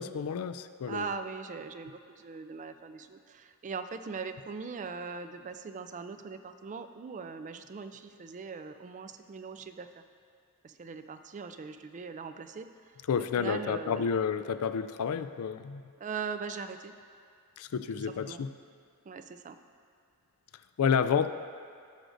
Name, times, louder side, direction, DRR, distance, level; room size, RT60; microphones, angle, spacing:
voice 1, 0.0-1.1 13.1-15.8 17.6-18.5 20.8-21.3, left 6 dB, 80° left, 12 dB, 0.4 m, -30 dB
voice 2, 0.9-10.0 10.6-12.9 13.4-14.1 16.0-16.9 18.2-18.4 19.1-19.6, right 5 dB, 35° right, 9 dB, 0.4 m, -40 dB
15.5 x 6.4 x 2.6 m, 2.3 s
head